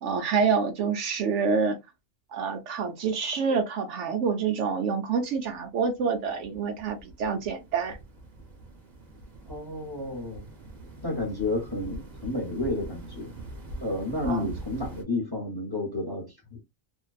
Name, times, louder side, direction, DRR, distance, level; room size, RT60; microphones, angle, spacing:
voice 1, 0.0-1.8 2.3-8.0 14.2-14.5, right 5 dB, 70° right, 0.8 m, -27 dB
sound 1, 5.2-15.0, right 1 dB, 35° right, 0.8 m, -44 dB
voice 2, 9.5-10.5 11.0-13.3 13.8-16.6, left 2 dB, 20° left, 0.9 m, -31 dB
2.5 x 2.2 x 2.3 m
omnidirectional pair, 1.4 m